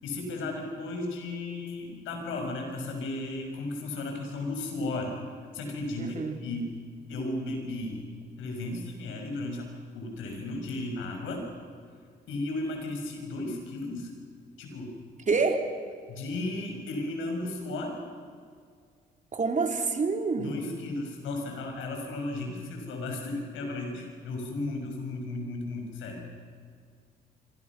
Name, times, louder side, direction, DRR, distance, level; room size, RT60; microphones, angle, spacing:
voice 1, 0.0-5.1 5.5-6.7 7.1-8.0 8.4-11.4 12.3-14.1 14.6-14.9 16.1-18.0 20.4-26.3, left 2 dB, 90° left, 3 dB, 6.1 m, -34 dB
voice 2, 6.0-6.3 15.3-15.6 19.3-20.6, right 4 dB, 40° right, 3 dB, 3.6 m, -27 dB
26.5 x 26.5 x 6.2 m, 2.1 s
cardioid pair, 75°, 20 cm